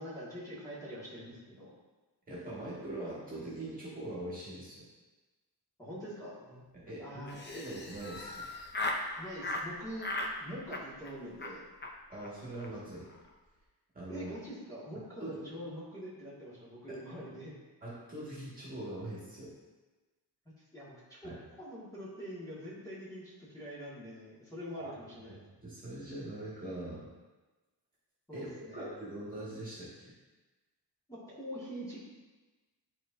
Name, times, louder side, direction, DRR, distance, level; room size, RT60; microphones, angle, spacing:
voice 1, 0.0-1.7 5.8-6.6 7.0-7.4 9.2-10.1 10.4-11.6 14.1-17.5 20.7-25.4 28.3-29.0 31.1-32.0, equal, 10° left, -9 dB, 2.0 m, -44 dB
voice 2, 2.3-4.9 6.7-8.5 12.1-13.1 13.9-14.3 15.2-15.7 16.9-17.0 17.8-19.5 21.2-21.4 24.8-24.9 25.3-27.1 28.3-30.1, right 1 dB, 20° right, -8 dB, 1.9 m, -42 dB
Laughter, 7.3-9.1 9.4-9.7 10.0-10.3 10.7-11.1 11.4-11.5 11.8-11.9 12.2-12.3 12.5-12.7 13.0-13.3, left 2 dB, 30° left, 0.7 m, -37 dB
11.0 x 4.5 x 2.7 m, 1.2 s
wide cardioid pair, 175°, 38 cm